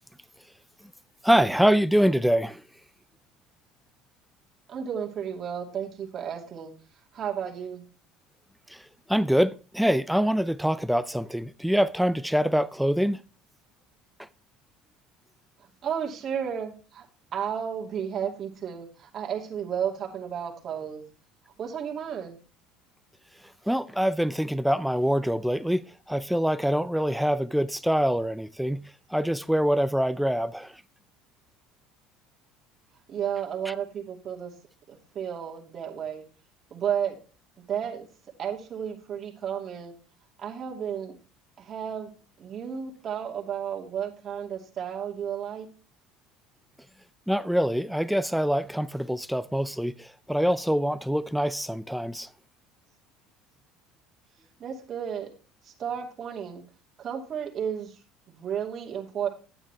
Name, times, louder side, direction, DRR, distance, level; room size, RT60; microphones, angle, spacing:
voice 1, 1.2-2.6 8.7-8.8 9.1-13.2 23.7-30.8 47.3-52.3, equal, ahead, 0.5 m, -25 dB
voice 2, 4.7-6.7 7.1-7.8 15.8-17.1 17.3-21.0 21.6-22.4 33.1-34.5 34.9-36.2 36.7-37.2 37.7-38.1 38.4-39.9 40.4-41.2 41.6-42.1 42.4-45.7 54.6-55.3 55.6-56.6 57.0-58.0 58.3-59.3, right 8 dB, 45° right, 2.4 m, -32 dB
10.0 x 9.0 x 3.3 m
supercardioid pair, 90°, 0 cm